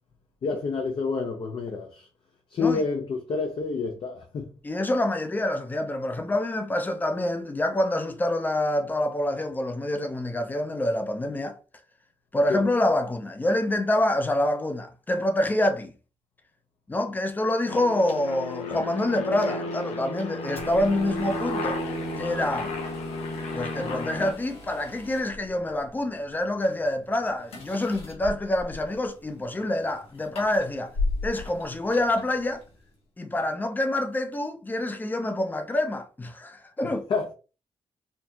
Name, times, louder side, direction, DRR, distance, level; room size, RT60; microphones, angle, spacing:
voice 1, 0.4-2.1 2.5-4.5 12.5-12.6 36.8-37.3, left 4 dB, 50° left, 0.7 m, -28 dB
voice 2, 4.6-11.6 12.3-15.9 16.9-21.8 22.2-22.7 23.5-31.0 31.2-32.6 33.2-37.1, left 1 dB, 15° left, 0.6 m, -26 dB
Aircraft, 17.7-24.3, left 2 dB, 85° left, 1.1 m, -33 dB
sound 1, 20.5-33.0, left 2 dB, 70° left, 1.8 m, -39 dB
4.3 x 2.8 x 2.8 m
cardioid pair, 130°, 11 cm